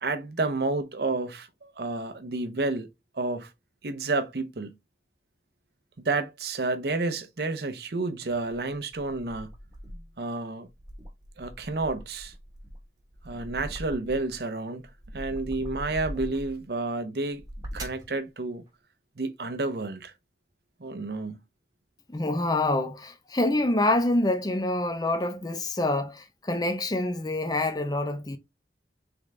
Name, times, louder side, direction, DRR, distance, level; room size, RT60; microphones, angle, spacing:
voice 1, 0.0-2.9 3.1-3.5 3.8-4.7 6.0-9.5 10.2-10.7 11.4-12.3 13.2-14.9 15.1-17.4 17.7-18.6 19.2-20.1 20.8-21.4, right 3 dB, 60° right, 0.7 m, -30 dB
sound 1, 8.4-10.2 10.7-14.4 14.8-16.7 17.3-18.1, equal, 20° right, 1.1 m, -41 dB
voice 2, 22.1-28.4, left 2 dB, 20° left, 0.6 m, -26 dB
3.8 x 3.4 x 3.2 m
head